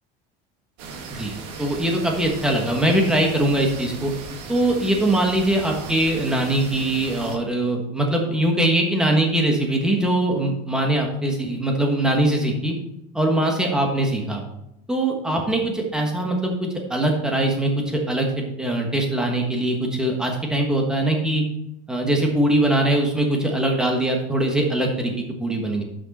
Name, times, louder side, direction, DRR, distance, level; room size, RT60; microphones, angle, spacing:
sound 1, 0.8-7.4, right 4 dB, 70° right, 1.8 m, -37 dB
voice 1, 1.6-4.1 4.5-12.7 13.1-14.4 14.9-21.4 21.9-25.1 25.4-25.8, right 1 dB, 5° right, 1 dB, 1.3 m, -22 dB
11.0 x 6.3 x 4.2 m, 0.83 s
cardioid pair, 170°, 20 cm